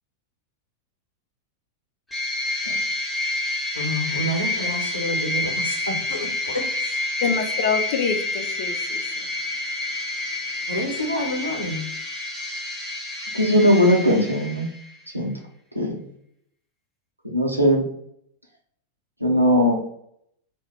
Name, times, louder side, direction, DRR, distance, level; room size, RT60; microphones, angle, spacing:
sound 1, 2.1-14.9, left 2 dB, 5° left, 0.8 m, -28 dB
voice 1, 3.7-7.0 10.7-11.9, left 1 dB, 85° left, 0.9 m, -29 dB
voice 2, 7.2-9.3, left 6 dB, 50° left, 0.5 m, -26 dB
voice 3, 13.3-14.7 15.1-15.3 15.8-16.0 17.2-17.8 19.2-19.7, equal, 85° right, 0.7 m, -18 dB
2.6 x 2.2 x 3.3 m
figure-of-eight pair, 90°, 0 cm